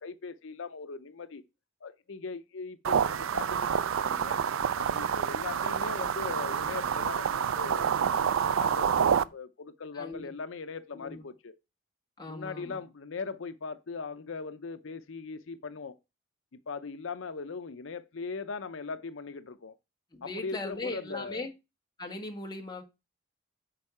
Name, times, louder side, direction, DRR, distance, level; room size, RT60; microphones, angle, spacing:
voice 1, 0.0-1.4 1.8-4.4 4.8-11.5 12.3-16.0 16.7-19.7 20.2-21.5, left 4 dB, 75° left, 0.6 m, -40 dB
sound 1, 2.8-9.2, right 7 dB, 85° right, 0.4 m, -28 dB
voice 2, 9.9-10.3 10.9-11.2 12.2-12.8 20.1-21.5 22.0-22.8, left 2 dB, 20° left, 1.3 m, -39 dB
8.7 x 5.4 x 4.8 m
head